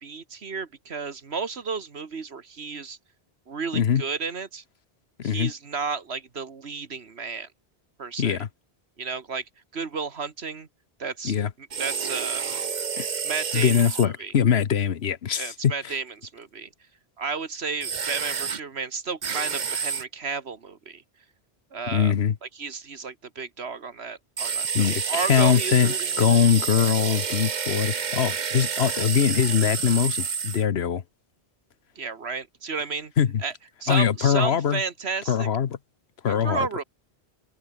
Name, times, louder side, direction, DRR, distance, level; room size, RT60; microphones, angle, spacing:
voice 1, 0.0-3.0 3.5-4.6 5.2-7.5 8.0-8.4 9.0-10.7 11.0-12.4 13.2-14.3 15.3-16.7 17.2-21.0 21.7-22.1 22.4-26.5 31.9-33.1 33.4-33.5 33.8-35.5 36.3-36.8, right 5 dB, 80° right, 1.9 m, -33 dB
voice 2, 5.2-5.5 8.2-8.5 11.2-11.5 13.0-13.1 13.5-15.7 21.9-22.3 24.7-31.0 33.2-33.4 33.9-34.8 35.3-35.8 36.2-36.6, left 8 dB, 75° left, 1.2 m, -22 dB
sound 1, 11.7-14.0 17.8-18.6 19.2-20.0 24.4-30.6, right 6 dB, 50° right, 1.0 m, -29 dB
omnidirectional pair, 1.1 m